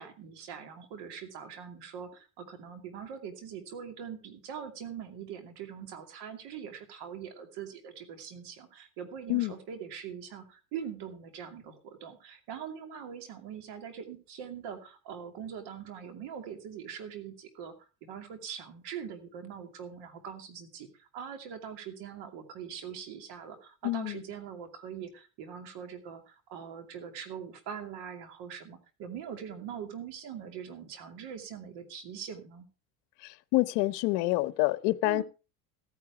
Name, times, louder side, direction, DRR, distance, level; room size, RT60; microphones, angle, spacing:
voice 1, 0.0-17.7 18.0-32.7 35.0-35.2, right 8 dB, 55° right, 2.7 m, -42 dB
voice 2, 23.8-24.2 33.5-35.2, left 19 dB, 60° left, 0.9 m, -27 dB
14.5 x 9.5 x 4.7 m
hypercardioid pair, 75°, 47 cm